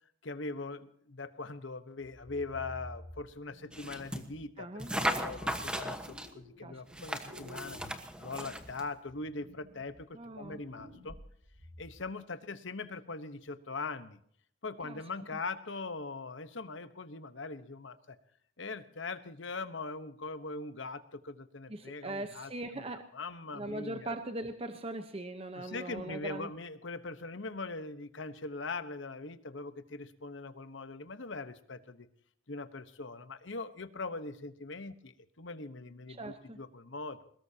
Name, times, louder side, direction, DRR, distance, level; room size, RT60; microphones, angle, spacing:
voice 1, 0.2-7.8 8.2-11.1 11.8-14.2 14.6-18.2 18.6-22.8 23.1-24.1 25.6-32.1 32.5-37.3, left 3 dB, 70° left, 11 dB, 1.1 m, -41 dB
sound 1, 2.0-4.5 4.9-6.9 7.2-12.1, left 1 dB, 85° right, 7.8 m, -52 dB
sound 2, 3.7-4.3 4.8-6.3 6.9-8.9, right 1 dB, 5° right, 1.2 m, -36 dB
voice 2, 4.6-4.9 6.6-6.8 10.1-10.6 14.8-15.0 21.7-23.1 23.5-26.5 36.1-36.6, right 1 dB, 30° right, 7 dB, 0.9 m, -40 dB
22.5 x 20.5 x 2.9 m, 0.64 s
head